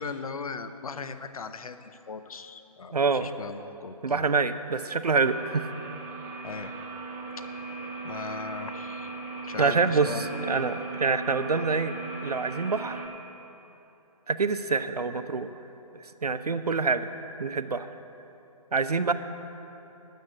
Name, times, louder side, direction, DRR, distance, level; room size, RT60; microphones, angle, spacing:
voice 1, 0.0-4.3 6.4-6.7 7.4-7.6 8.0-9.2 9.4-10.6, left 5 dB, 65° left, 11 dB, 0.7 m, -38 dB
voice 2, 2.9-3.3 4.0-5.7 9.6-11.9 12.2-13.1 14.3-15.5 16.0-17.1 17.4-17.9 18.7-19.1, right 4 dB, 85° right, 11 dB, 0.7 m, -26 dB
sound 1, 5.2-13.1, right 3 dB, 10° right, 0.5 m, -38 dB
13.0 x 6.5 x 7.8 m, 3.0 s
figure-of-eight pair, 145°, 19 cm